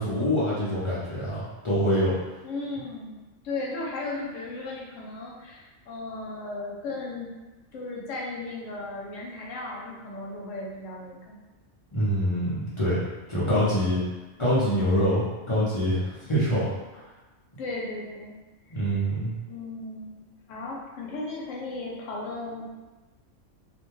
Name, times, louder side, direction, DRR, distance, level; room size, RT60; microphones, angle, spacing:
voice 1, 0.0-2.1 11.9-13.0 13.3-14.0 14.4-16.7 18.7-19.3, equal, 45° left, -10 dB, 0.4 m, -25 dB
voice 2, 2.4-3.2 3.4-7.3 7.7-11.4 17.6-18.4 18.7-19.0 19.5-20.2 20.5-22.7, left 2 dB, 70° left, -3 dB, 0.9 m, -36 dB
2.5 x 2.2 x 3.1 m, 1.2 s
omnidirectional pair, 1.5 m